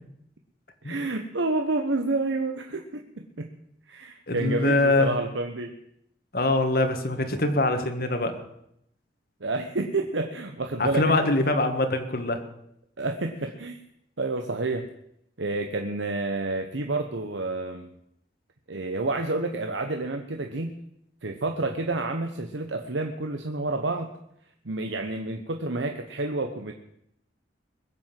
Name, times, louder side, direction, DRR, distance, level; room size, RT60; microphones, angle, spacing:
voice 1, 0.8-3.5 3.9-5.7 9.4-11.3 13.0-13.8 14.2-14.9 15.4-17.9 18.7-20.7 21.2-24.1 24.6-26.7, right 2 dB, 85° right, 5 dB, 1.1 m, -29 dB
voice 2, 4.3-5.1 6.3-8.4 10.8-12.4, left 2 dB, 50° left, 7 dB, 1.7 m, -23 dB
21.5 x 7.8 x 7.6 m, 0.76 s
head